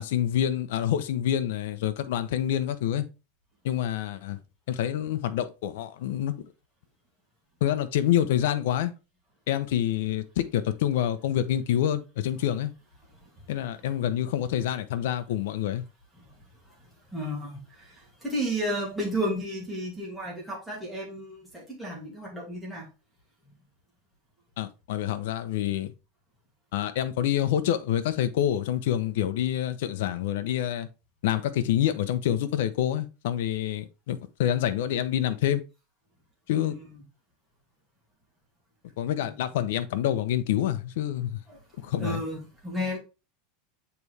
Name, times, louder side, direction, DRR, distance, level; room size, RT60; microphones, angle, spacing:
voice 1, 0.0-3.0 3.6-4.4 4.7-6.3 7.6-8.9 9.5-12.7 13.5-15.8 24.6-25.9 26.7-30.9 31.2-35.6 36.5-36.7 39.0-41.4 41.8-42.2, left 11 dB, 70° left, 0.8 m, -27 dB
voice 2, 17.1-22.9 36.5-37.0 39.2-39.4 41.5-41.6 42.0-43.0, equal, ahead, 2.3 m, -33 dB
7.0 x 4.1 x 3.3 m
supercardioid pair, 165°, 0 cm